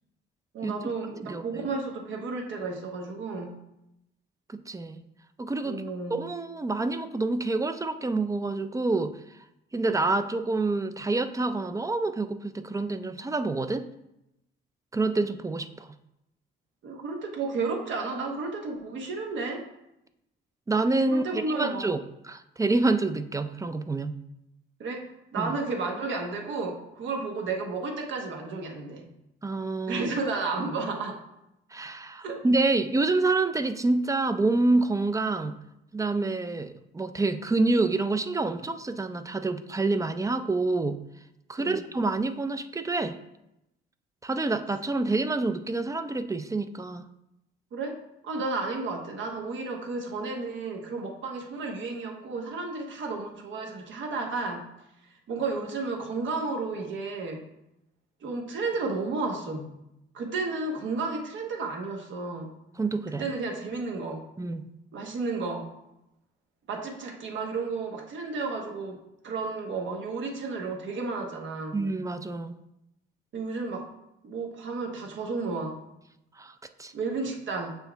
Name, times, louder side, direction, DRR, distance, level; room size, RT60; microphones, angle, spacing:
voice 1, 0.5-3.6 5.6-6.2 16.8-19.7 21.1-21.9 24.8-29.0 29.9-31.2 32.2-32.4 41.6-41.8 47.7-54.7 55.3-57.4 58.2-59.7 60.1-62.5 63.2-64.3 64.9-65.7 66.7-71.8 73.3-73.9 74.2-75.8 76.9-77.8, right 3 dB, 70° right, 2 dB, 1.1 m, -32 dB
voice 2, 4.5-5.0 5.4-5.8 6.1-9.1 9.7-13.9 14.9-15.9 20.7-22.0 22.2-24.2 25.4-25.5 29.4-30.0 31.7-35.5 35.9-41.0 41.5-43.2 44.2-47.1 62.8-63.3 64.4-64.6 71.7-72.6 76.4-76.5 76.8-76.9, right 3 dB, 15° right, 10 dB, 0.4 m, -27 dB
6.9 x 4.5 x 3.4 m, 0.87 s
cardioid pair, 90°, 20 cm